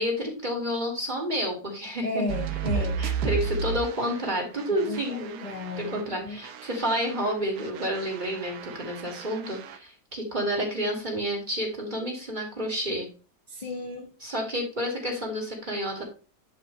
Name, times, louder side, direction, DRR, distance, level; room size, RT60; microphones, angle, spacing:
voice 1, 0.0-2.2 2.7-5.4 5.8-13.1 14.2-16.1, equal, 25° right, 2.6 m, -30 dB
voice 2, 2.0-3.1 4.7-6.4 13.5-14.1, left 2 dB, 30° left, 1.2 m, -34 dB
sound 1, 2.3-6.1 6.4-9.8, right 5 dB, 75° right, 1.4 m, -34 dB
11.0 x 5.1 x 3.3 m
omnidirectional pair, 1.8 m